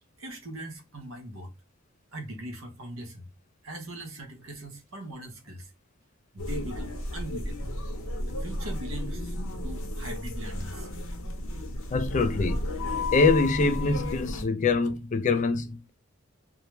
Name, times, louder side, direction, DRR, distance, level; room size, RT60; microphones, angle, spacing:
voice 1, 0.2-1.5 2.1-3.3 3.6-5.7 6.3-7.7 8.3-9.3 9.6-10.9, right 1 dB, 85° right, 0.8 m, -40 dB
sound 1, 6.4-14.4, left 1 dB, 85° left, 0.7 m, -33 dB
voice 2, 11.9-12.7 13.1-15.9, left 3 dB, 35° left, 0.3 m, -24 dB
2.3 x 2.1 x 3.0 m
head